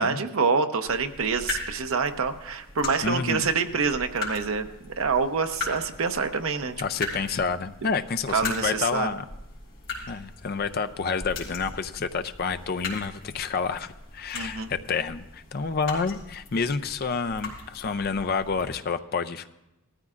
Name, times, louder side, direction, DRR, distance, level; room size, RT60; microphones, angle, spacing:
voice 1, 0.0-4.7 5.0-6.8 8.3-9.1 14.3-14.7, right 5 dB, 70° right, 7 dB, 0.7 m, -26 dB
sound 1, 0.9-18.7, left 3 dB, 60° left, 3.2 m, -39 dB
voice 2, 3.0-3.5 6.8-9.2 10.1-19.5, left 5 dB, 45° left, 10 dB, 0.4 m, -29 dB
18.5 x 13.5 x 2.5 m, 0.92 s
head